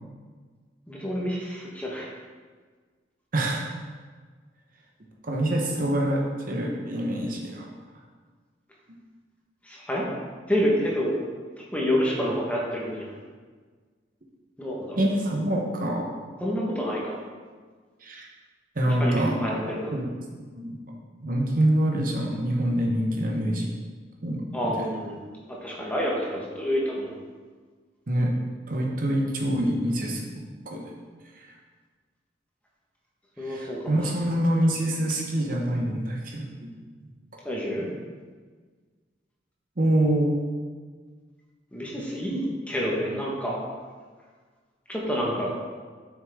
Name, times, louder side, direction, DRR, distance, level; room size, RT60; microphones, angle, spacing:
voice 1, 0.9-2.1 9.6-10.0 10.5-11.2 11.6-13.2 14.6-15.0 16.4-17.2 19.0-19.9 24.5-25.2 25.5-27.2 33.4-34.0 37.4-37.9 41.7-42.4 42.7-43.6 44.9-45.5, equal, 10° left, -4 dB, 1.3 m, -28 dB
voice 2, 3.3-3.7 5.2-7.7 15.0-16.1 18.0-18.2 18.8-19.4 19.9-20.0 20.4-20.8 21.2-23.7 24.2-24.7 28.1-28.3 28.7-30.2 30.7-30.8 31.3-31.5 33.4-36.7 37.0-37.1 39.8-40.4, right 1 dB, 50° right, -1 dB, 0.9 m, -25 dB
7.2 x 6.3 x 3.5 m, 1.5 s
head